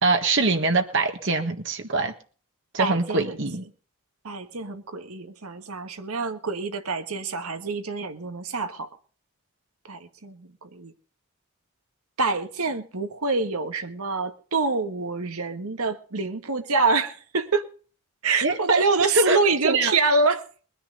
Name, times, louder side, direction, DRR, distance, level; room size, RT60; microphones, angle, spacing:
voice 1, 0.0-2.1 2.7-3.6 18.4-18.8 19.1-19.4 19.6-19.9, right 3 dB, 55° right, 1.6 m, -23 dB
voice 2, 2.8-3.4 4.2-8.9 9.9-10.9 12.2-17.7 18.2-20.4, right 3 dB, 85° right, 1.6 m, -26 dB
21.5 x 10.0 x 4.0 m
head